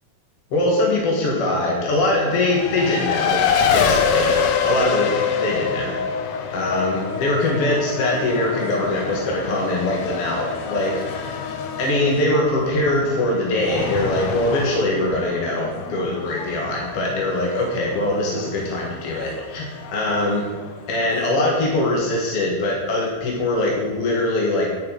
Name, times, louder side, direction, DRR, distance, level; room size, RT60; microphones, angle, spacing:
voice 1, 0.5-3.5 3.7-4.3 4.6-5.1 5.4-5.9 6.5-11.4 11.8-20.5 20.9-24.7, left 1 dB, 55° left, -2 dB, 2.5 m, -22 dB
Race car auto racing, 2.3-21.4, left 6 dB, 70° left, 1.5 m, -26 dB
10.0 x 9.6 x 5.3 m, 1.4 s
omnidirectional pair, 3.6 m